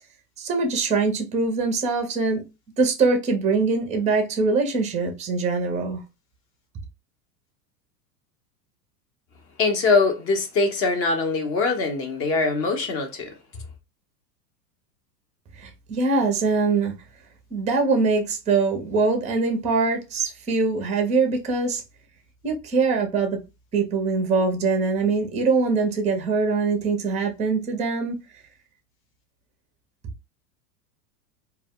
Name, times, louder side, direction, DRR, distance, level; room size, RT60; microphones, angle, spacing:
voice 1, 0.4-2.4 2.8-6.0 15.6-16.9 17.5-21.8 22.4-23.4 23.7-28.2, right 4 dB, 15° right, 0.5 m, -23 dB
voice 2, 9.6-13.3, left 3 dB, 30° left, 0.6 m, -22 dB
2.2 x 2.1 x 3.4 m
hypercardioid pair, 115°, 46 cm